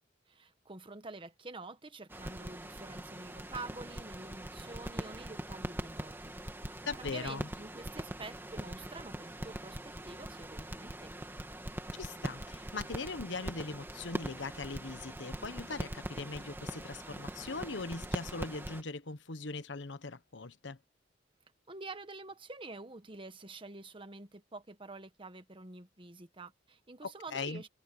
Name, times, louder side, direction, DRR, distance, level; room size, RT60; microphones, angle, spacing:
voice 1, 0.3-6.3 6.6-11.2 21.7-27.7, right 3 dB, 30° right, 1.3 m, -47 dB
sound 1, 2.1-18.8, right 1 dB, 10° right, 2.1 m, -42 dB
voice 2, 6.8-7.5 12.0-20.8 27.0-27.6, left 4 dB, 75° left, 1.1 m, -40 dB
head